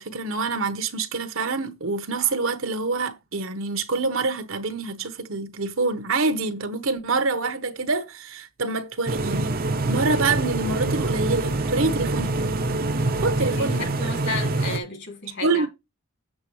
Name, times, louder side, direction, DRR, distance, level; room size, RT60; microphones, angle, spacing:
voice 1, 0.0-9.6 9.9-12.5 13.2-14.4 15.4-15.7, right 3 dB, 65° right, 1.0 m, -26 dB
sound 1, 9.1-14.8, right 2 dB, 40° right, 0.7 m, -25 dB
voice 2, 13.4-15.7, left 3 dB, 55° left, 2.5 m, -33 dB
7.6 x 7.3 x 3.1 m
head